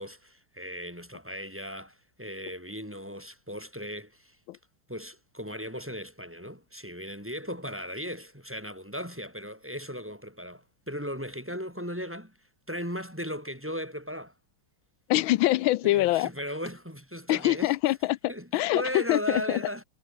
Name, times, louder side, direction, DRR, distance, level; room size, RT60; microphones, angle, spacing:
voice 1, 0.0-4.4 4.9-12.4 12.7-14.3 15.8-17.7 18.3-19.8, equal, 5° right, 4.5 m, -37 dB
voice 2, 15.1-16.3 17.3-18.2 18.5-19.6, left 17 dB, 80° left, 1.3 m, -24 dB
omnidirectional pair, 2.2 m